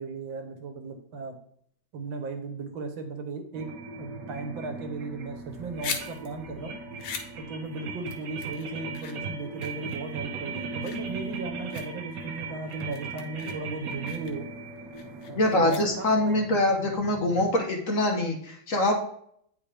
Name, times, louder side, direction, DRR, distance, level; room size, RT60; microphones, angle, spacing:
voice 1, 0.0-1.4 1.9-3.7 4.0-6.8 7.4-14.5 15.3-16.4, right 3 dB, 90° right, 5 dB, 1.8 m, -36 dB
sound 1, 3.5-17.5, right 4 dB, 70° right, 1.5 m, -39 dB
sound 2, 5.4-16.3, left 6 dB, 85° left, 1.5 m, -42 dB
voice 2, 15.3-18.9, left 1 dB, 50° left, 1 dB, 1.3 m, -24 dB
8.8 x 4.7 x 3.4 m, 0.64 s
omnidirectional pair, 2.1 m